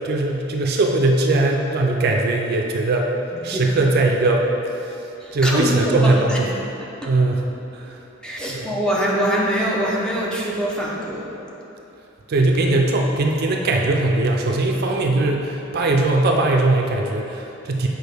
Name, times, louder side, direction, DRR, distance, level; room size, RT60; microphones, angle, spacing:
voice 1, 0.0-3.1 3.4-6.5 7.0-7.5 7.7-8.0 8.5-8.8 12.3-17.9, right 2 dB, 50° right, 1 dB, 0.4 m, -20 dB
voice 2, 5.2-6.4 8.2-11.3, equal, 5° left, -4 dB, 0.7 m, -23 dB
6.3 x 4.5 x 3.4 m, 2.9 s
head